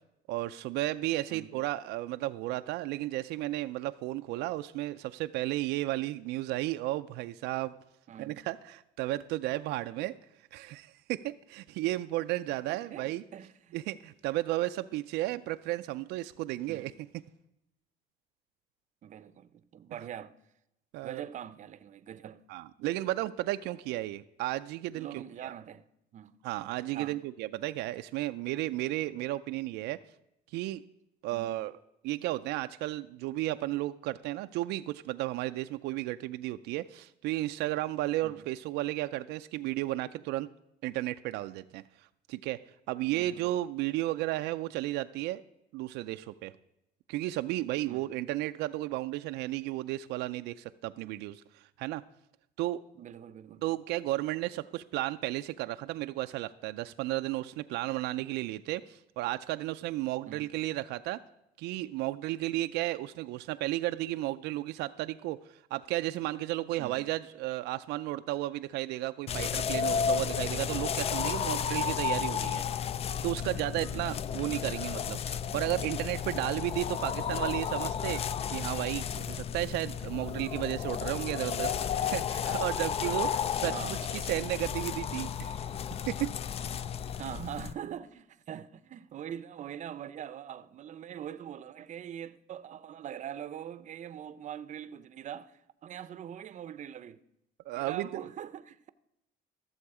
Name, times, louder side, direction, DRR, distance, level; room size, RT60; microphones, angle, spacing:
voice 1, 0.3-7.7 8.2-10.2 10.5-13.2 13.7-16.9 20.9-21.2 22.5-25.5 26.4-30.0 30.5-30.8 31.2-31.7 32.0-40.5 40.8-41.8 42.3-42.6 42.9-45.4 45.7-46.5 47.1-52.0 52.6-52.8 53.6-61.2 61.6-72.6 73.2-78.2 78.5-85.5 86.1-86.3 97.7-98.3, right 16 dB, 90° right, 0.4 m, -33 dB
voice 2, 8.1-8.4 12.7-13.8 16.7-16.9 19.0-20.4 21.0-22.4 24.9-25.8 26.1-26.4 26.9-27.2 31.3-31.6 38.2-38.5 43.1-43.5 47.9-48.1 53.0-53.6 60.3-60.5 66.8-67.0 73.9-74.1 83.7-84.1 87.1-97.2 97.7-98.9, right 9 dB, 45° right, 0.6 m, -43 dB
sound 1, 69.3-87.7, left 7 dB, 35° left, 0.4 m, -33 dB
14.5 x 7.1 x 4.8 m
cardioid pair, 110°, 17 cm